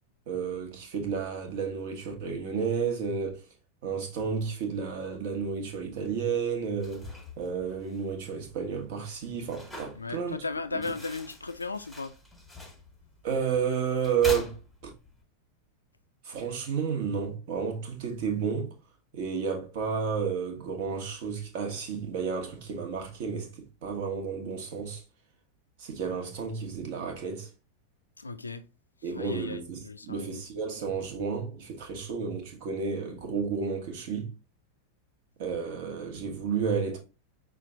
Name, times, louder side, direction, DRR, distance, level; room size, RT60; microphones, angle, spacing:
voice 1, 0.3-3.4 3.8-7.1 7.4-10.4 10.7-10.8 13.2-14.9 16.2-18.7 19.1-25.0 25.8-27.5 29.0-34.3 35.4-37.0, right 6 dB, 50° right, 1.2 m, -31 dB
sound 1, 6.7-15.2, left 2 dB, ahead, 1.4 m, -44 dB
voice 2, 10.0-12.1 28.2-28.6 29.1-30.3, left 3 dB, 80° left, 0.4 m, -36 dB
5.7 x 2.4 x 3.6 m
figure-of-eight pair, 90°, 0 cm